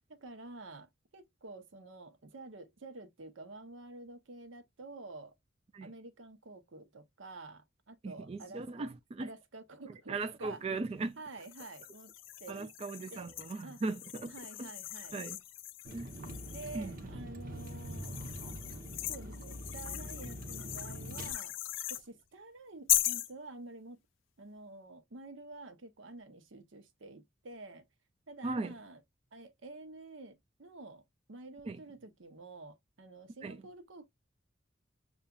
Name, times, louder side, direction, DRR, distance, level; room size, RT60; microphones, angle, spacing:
voice 1, 0.2-5.3 5.8-8.9 9.2-10.6 11.2-12.1 12.4-12.7 13.1-13.3 13.6-13.8 14.3-15.2 16.5-18.2 19.1-21.5 21.9-24.0 24.4-27.8 28.3-29.0 29.3-31.0 31.3-34.1, right 2 dB, 80° right, 0.8 m, -49 dB
voice 2, 8.0-9.3 10.1-11.2 12.5-14.7 15.1-15.4 15.9-16.2 16.7-16.9 28.4-28.8 31.7-31.8 33.4-33.6, right 3 dB, 30° right, 0.3 m, -38 dB
sound 1, 11.4-17.0 17.6-22.0 22.9-23.3, left 14 dB, 80° left, 0.4 m, -38 dB
Vehicle, 15.8-21.3, equal, 50° right, 1.0 m, -44 dB
6.8 x 2.4 x 2.3 m
head